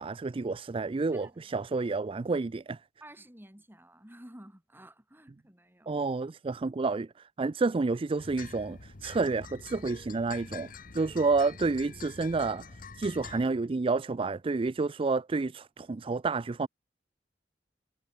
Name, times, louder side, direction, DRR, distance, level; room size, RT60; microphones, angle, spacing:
voice 1, 0.0-2.8 5.9-10.7 10.9-12.6 12.9-16.7, right 3 dB, 30° right, 0.4 m, -29 dB
voice 2, 1.1-1.5 3.0-5.9, right 1 dB, 10° right, 6.9 m, -52 dB
sound 1, 8.2-13.5, left 5 dB, 50° left, 1.2 m, -46 dB
head